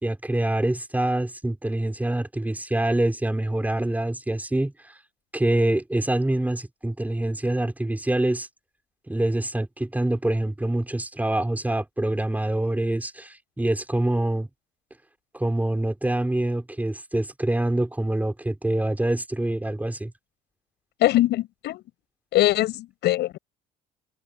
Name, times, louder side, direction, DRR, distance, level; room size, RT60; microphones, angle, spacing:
voice 1, 0.0-4.7 5.3-8.5 9.1-14.5 15.3-20.1, right 1 dB, 10° right, 4.7 m, -25 dB
voice 2, 21.0-21.8 22.3-23.4, left 15 dB, 65° left, 6.6 m, -22 dB
hypercardioid pair, 65°, 19 cm